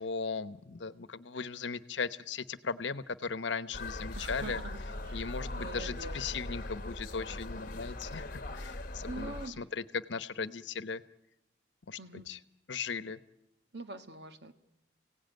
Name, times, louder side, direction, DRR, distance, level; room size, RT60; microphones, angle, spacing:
voice 1, 0.0-4.6 5.1-11.0 11.9-12.0 12.3-12.4 12.7-13.2, left 5 dB, 80° left, 14 dB, 1.0 m, -37 dB
sound 1, 3.7-9.5, left 2 dB, 50° left, 1.3 m, -40 dB
voice 2, 4.1-6.3 9.1-9.6 12.0-12.3 13.7-14.5, right 3 dB, 60° right, 8 dB, 1.6 m, -45 dB
29.5 x 17.0 x 9.2 m, 0.89 s
head